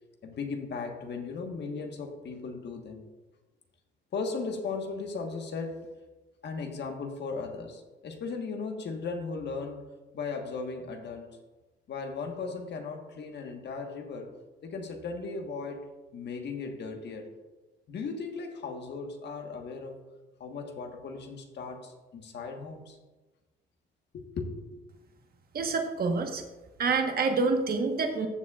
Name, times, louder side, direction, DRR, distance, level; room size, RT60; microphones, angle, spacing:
voice 1, 0.2-3.1 4.1-5.9 6.4-9.9 10.1-11.3 11.9-14.3 14.6-17.3 17.9-20.0 20.4-23.0 24.1-24.8, left 4 dB, 60° left, 4 dB, 1.4 m, -37 dB
voice 2, 25.5-26.4 26.8-28.3, right 4 dB, 50° right, 4 dB, 1.3 m, -27 dB
14.0 x 7.2 x 2.4 m, 1.2 s
cardioid pair, 90°, 20 cm